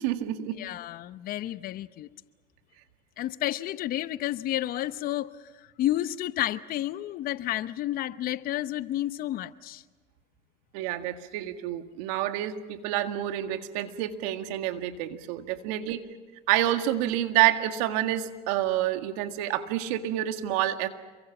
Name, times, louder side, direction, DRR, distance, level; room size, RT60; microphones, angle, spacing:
voice 1, 0.0-0.6 10.7-16.0 16.5-20.9, right 13 dB, 70° right, 1.9 m, -28 dB
voice 2, 0.6-2.1 3.2-5.3 5.8-9.8, left 13 dB, 50° left, 0.9 m, -31 dB
28.0 x 23.5 x 6.0 m
supercardioid pair, 105°, 20 cm